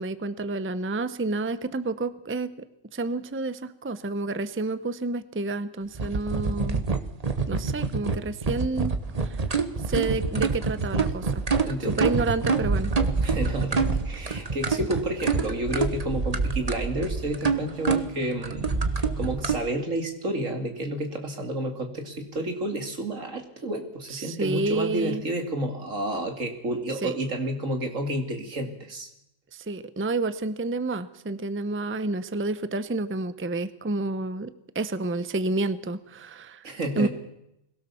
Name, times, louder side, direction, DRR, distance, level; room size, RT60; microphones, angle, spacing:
voice 1, 0.0-2.7 2.9-6.8 7.5-9.4 9.9-11.4 11.8-12.9 24.1-25.2 27.0-27.1 29.5-36.7 37.0-37.1, right 2 dB, 10° right, 14 dB, 0.6 m, -29 dB
sound 1, 5.9-19.6, right 4 dB, 30° right, 1.3 m, -26 dB
voice 2, 11.6-12.0 13.2-18.7 19.2-29.1 36.6-37.1, right 1 dB, 80° right, 5 dB, 2.9 m, -30 dB
22.0 x 17.0 x 7.0 m, 0.82 s
omnidirectional pair, 1.3 m